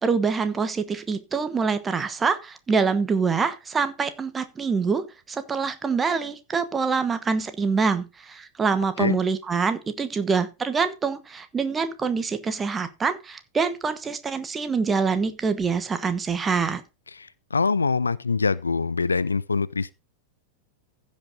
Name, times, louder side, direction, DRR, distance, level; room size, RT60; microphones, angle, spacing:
voice 1, 0.0-16.8, right 5 dB, 15° right, 1.1 m, -25 dB
voice 2, 17.2-19.9, left 4 dB, 75° left, 0.4 m, -24 dB
15.5 x 5.4 x 3.7 m
figure-of-eight pair, 90°, 0 cm